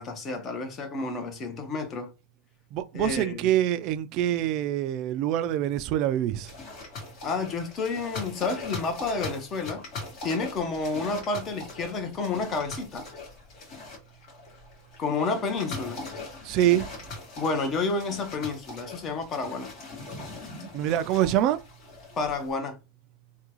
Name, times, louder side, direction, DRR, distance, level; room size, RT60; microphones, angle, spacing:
voice 1, 0.0-2.1 2.9-3.5 7.2-9.8 10.2-13.1 15.0-16.0 17.4-19.7 22.2-22.8, left 3 dB, 30° left, 1.0 m, -30 dB
voice 2, 2.7-6.5 16.4-16.9 20.7-21.6, right 12 dB, 50° right, 0.4 m, -25 dB
sound 1, 6.4-22.5, left 3 dB, 50° left, 1.9 m, -41 dB
3.6 x 2.3 x 3.0 m
supercardioid pair, 130°, 0 cm